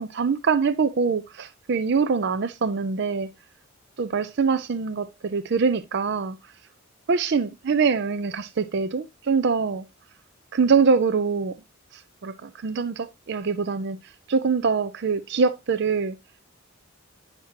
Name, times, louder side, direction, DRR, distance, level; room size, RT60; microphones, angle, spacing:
voice 1, 0.0-3.3 4.0-6.4 7.1-9.8 10.5-11.6 11.9-14.0 14.3-16.2, right 5 dB, 50° right, 0.4 m, -24 dB
8.9 x 5.7 x 2.9 m
head